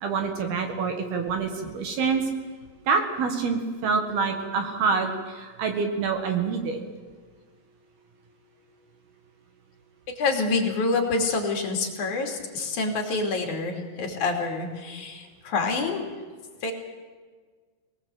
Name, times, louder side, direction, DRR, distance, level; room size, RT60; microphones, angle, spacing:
voice 1, 0.0-2.2 2.9-6.8, right 5 dB, 60° right, 4 dB, 3.1 m, -26 dB
voice 2, 10.1-16.1 16.6-16.7, left 3 dB, 45° left, 1 dB, 3.4 m, -27 dB
24.0 x 19.5 x 7.8 m, 1.5 s
omnidirectional pair, 5.9 m